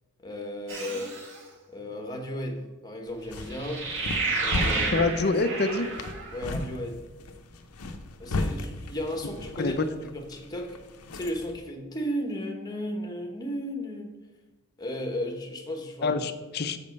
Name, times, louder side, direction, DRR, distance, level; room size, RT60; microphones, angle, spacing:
voice 1, 0.2-1.2 1.7-3.8 4.4-5.1 6.3-7.0 8.2-10.8 11.1-14.1 14.8-16.2, equal, 15° left, 3 dB, 1.0 m, -34 dB
sound 1, 0.7-1.4 3.5-6.4, right 3 dB, 55° right, 1.8 m, -31 dB
sound 2, 3.1-11.6, left 2 dB, 80° left, 0.7 m, -36 dB
voice 2, 4.9-5.9 9.6-9.9 16.0-16.9, left 3 dB, 45° left, 10 dB, 0.5 m, -26 dB
7.0 x 5.4 x 5.3 m, 1.2 s
head